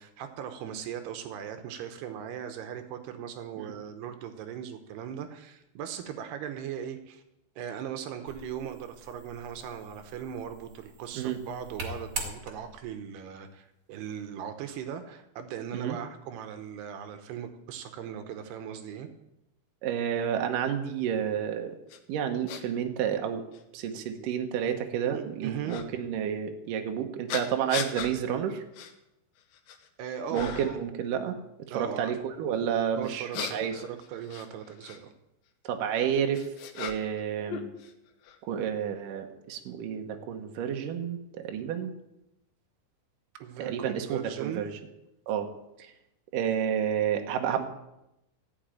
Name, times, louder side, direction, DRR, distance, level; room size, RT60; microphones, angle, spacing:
voice 1, 0.0-7.2 7.6-19.1 25.1-25.8 30.0-30.8 31.7-32.2 32.9-35.1 43.4-44.6, right 9 dB, 75° right, 8 dB, 2.5 m, -39 dB
sound 1, 8.3-13.0, right 3 dB, 45° right, 1.8 m, -42 dB
voice 2, 19.8-21.7 22.1-23.4 23.7-28.6 30.3-31.4 31.7-33.8 35.6-36.4 36.7-37.7 38.4-41.9 43.6-44.7 45.3-45.5 45.8-45.9 46.3-47.6, right 8 dB, 90° right, 4 dB, 1.8 m, -30 dB
sound 2, 21.9-22.0 22.5-22.6 23.5-23.6 25.7-25.9 27.3-28.1 28.7-28.9 29.4-29.9 30.3-30.8 33.0-35.0 35.9-37.2 37.5-38.4, left 8 dB, 75° left, 3.0 m, -38 dB
15.0 x 6.2 x 9.0 m, 0.88 s
omnidirectional pair, 5.6 m